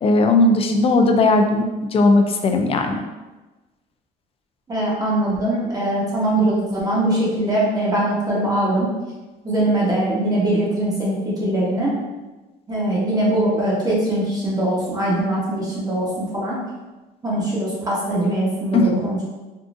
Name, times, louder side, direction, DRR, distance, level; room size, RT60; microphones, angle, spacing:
voice 1, 0.0-1.6 1.9-3.0 18.7-19.0, left 2 dB, 35° left, 5 dB, 0.4 m, -17 dB
voice 2, 4.7-8.9 9.4-11.9 12.7-16.6 17.2-19.2, right 1 dB, 20° right, -6 dB, 1.2 m, -21 dB
3.7 x 2.4 x 2.5 m, 1.2 s
cardioid pair, 110°, 17 cm